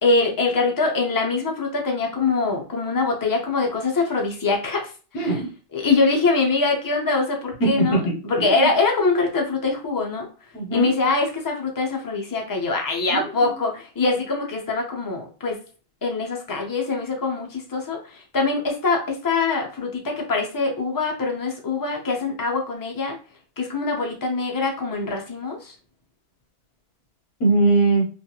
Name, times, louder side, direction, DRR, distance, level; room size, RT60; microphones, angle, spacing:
voice 1, 0.0-4.9 5.7-10.3 10.7-15.6 16.0-23.2 23.6-25.7, left 3 dB, 35° left, 1 dB, 0.3 m, -23 dB
voice 2, 5.1-5.5 7.6-8.7 10.5-10.9 13.1-13.5 27.4-28.1, right 3 dB, 75° left, 0 dB, 1.0 m, -21 dB
2.5 x 2.3 x 2.8 m, 0.37 s
omnidirectional pair, 1.2 m